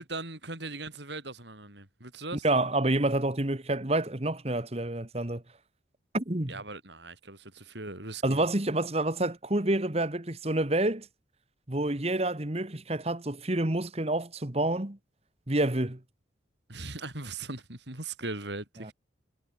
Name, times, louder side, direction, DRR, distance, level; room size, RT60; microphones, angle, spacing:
voice 1, 0.0-2.5 6.5-8.2 16.7-18.9, right 3 dB, 65° right, 6.2 m, -39 dB
voice 2, 2.4-5.4 6.1-6.5 8.2-11.1 11.7-15.0 15.5-16.0 18.8-18.9, right 1 dB, 35° right, 1.6 m, -28 dB
head